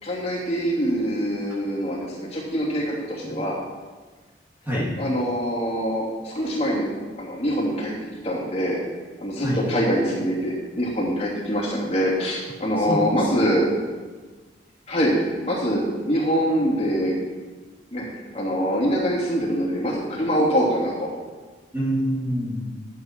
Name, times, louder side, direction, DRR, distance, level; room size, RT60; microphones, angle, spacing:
voice 1, 0.0-3.6 5.0-8.0 8.2-8.8 9.2-13.7 14.9-17.2 17.9-18.1 18.3-21.1, equal, 35° left, -5 dB, 3.0 m, -24 dB
voice 2, 12.8-13.3 21.7-22.7, equal, 10° right, -7 dB, 2.3 m, -26 dB
12.0 x 8.9 x 4.6 m, 1.3 s
head